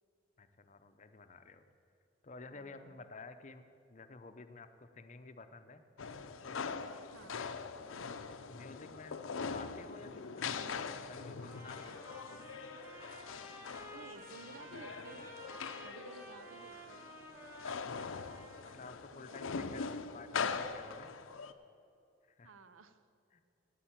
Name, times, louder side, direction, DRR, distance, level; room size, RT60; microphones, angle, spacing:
voice 1, 0.4-1.7 2.2-5.8 6.4-6.8 7.4-7.5 8.5-12.2 17.6-18.2 18.5-21.2 22.2-22.5 23.3-23.4, left 3 dB, 35° left, 9 dB, 0.6 m, -52 dB
voice 2, 2.5-3.0 7.1-7.4 13.9-15.3 15.8-17.1 19.1-20.1 22.4-23.1, right 3 dB, 80° right, 12 dB, 0.7 m, -55 dB
sound 1, 6.0-21.5, left 5 dB, 80° left, 0.6 m, -42 dB
Trumpet, 11.4-18.8, equal, 15° right, 1.5 m, -53 dB
9.1 x 8.9 x 8.8 m, 2.6 s
head